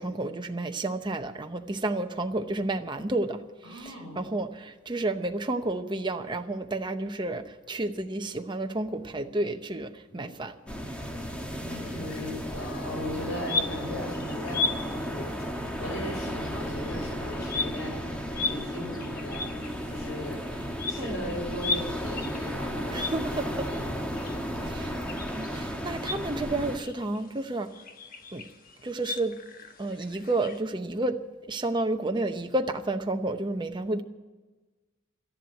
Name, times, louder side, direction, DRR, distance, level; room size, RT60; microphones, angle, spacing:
voice 1, 0.0-3.4 3.7-10.5 21.0-21.4 22.9-23.7 24.6-24.9 25.3-27.7 28.3-28.4 28.8-29.4 29.8-31.2 31.5-34.0, right 2 dB, 25° right, 5 dB, 0.8 m, -31 dB
voice 2, 3.6-4.3 10.1-10.3 11.7-14.6 14.9-18.0 18.3-20.4 20.9-23.2 23.6-23.9, left 1 dB, 80° left, 0 dB, 6.1 m, -38 dB
sound 1, 10.7-26.8, equal, 5° left, 1.3 m, -34 dB
sound 2, 11.8-30.6, left 3 dB, 45° left, 1.1 m, -38 dB
13.0 x 11.0 x 9.1 m, 1.2 s
head